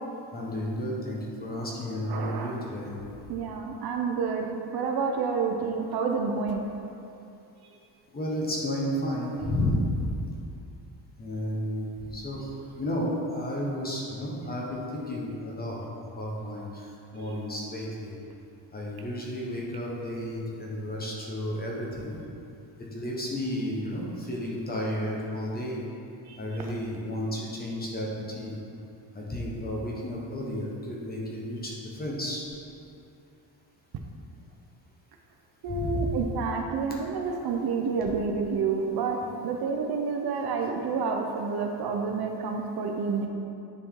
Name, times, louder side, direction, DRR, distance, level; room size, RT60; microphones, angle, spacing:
voice 1, 0.3-3.0 8.1-10.0 11.2-15.8 16.1-18.1 18.7-22.2 22.9-25.8 26.4-28.6 29.1-32.5 35.7-36.2, left 1 dB, 20° left, -4 dB, 1.1 m, -32 dB
voice 2, 2.1-2.6 3.3-6.7 7.6-7.7 17.1-17.4 26.3-26.4 35.6-39.2 39.4-43.3, right 5 dB, 60° right, 2 dB, 0.7 m, -29 dB
10.0 x 4.5 x 3.7 m, 2.7 s
cardioid pair, 175°, 42 cm